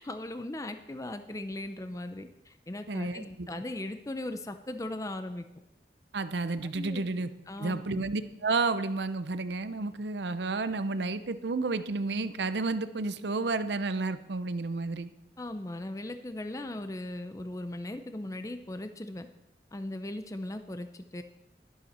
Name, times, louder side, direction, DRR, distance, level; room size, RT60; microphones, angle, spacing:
voice 1, 0.0-5.5 6.7-7.1 7.5-8.0 15.4-19.3 19.7-21.2, left 1 dB, 20° left, 8 dB, 0.5 m, -38 dB
voice 2, 2.9-3.5 6.1-7.3 7.6-15.1, right 3 dB, 80° right, 12 dB, 0.7 m, -31 dB
12.0 x 11.5 x 4.3 m, 0.91 s
head